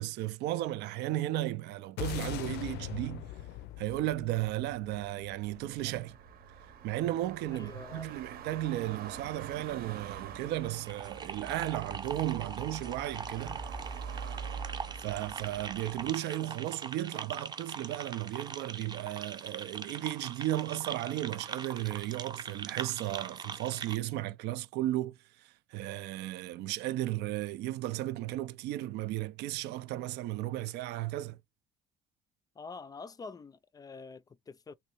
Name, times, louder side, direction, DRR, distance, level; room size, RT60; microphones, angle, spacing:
voice 1, 0.0-3.3 3.8-6.2 6.8-13.6 15.0-31.4, right 15 dB, 85° right, 0.5 m, -35 dB
sound 1, 2.0-6.4, left 13 dB, 80° left, 0.5 m, -41 dB
sound 2, 5.4-16.1, right 6 dB, 65° right, 0.9 m, -44 dB
voice 2, 7.5-8.2 32.6-34.7, left 4 dB, 20° left, 0.4 m, -46 dB
sound 3, 10.6-24.0, right 5 dB, 25° right, 0.6 m, -42 dB
3.2 x 2.7 x 3.0 m
cardioid pair, 110°, 17 cm